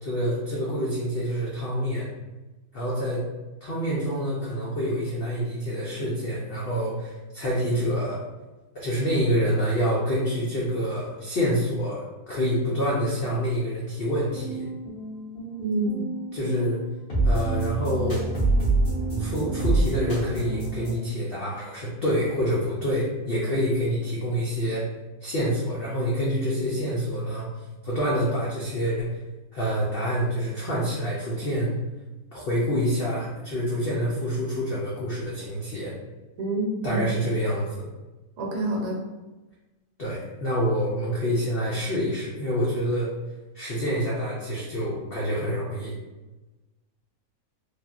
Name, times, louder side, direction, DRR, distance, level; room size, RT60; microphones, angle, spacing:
voice 1, 0.0-2.1 2.7-3.2 3.6-8.2 8.7-14.7 16.3-16.8 17.2-18.2 19.2-24.8 25.2-27.5 27.8-29.2 29.5-31.7 32.3-35.9 36.8-37.9 40.0-43.1 43.5-45.9, equal, 75° left, -6 dB, 0.5 m, -27 dB
sound 1, 14.3-20.9, right 2 dB, 45° left, 1.2 m, -27 dB
voice 2, 15.6-16.1 36.4-37.0 38.4-39.0, right 1 dB, 75° right, -2 dB, 1.3 m, -27 dB
3.3 x 2.4 x 2.4 m, 1.1 s
omnidirectional pair, 1.7 m